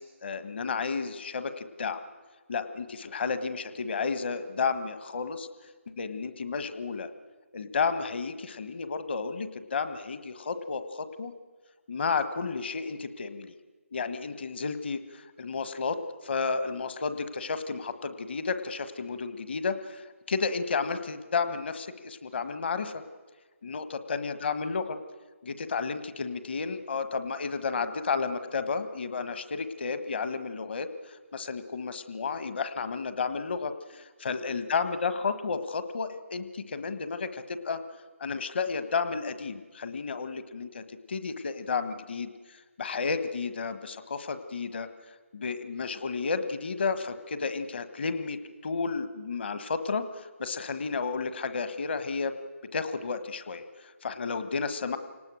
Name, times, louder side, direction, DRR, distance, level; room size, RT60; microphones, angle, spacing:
voice 1, 0.0-2.1 2.5-5.5 6.0-7.1 7.5-11.3 11.9-13.6 13.9-23.0 23.6-25.0 25.4-37.8 38.2-44.9 45.3-52.4 52.7-55.0, left 5 dB, 50° left, 11 dB, 1.5 m, -32 dB
28.5 x 18.5 x 6.4 m, 1.4 s
figure-of-eight pair, 155°, 8 cm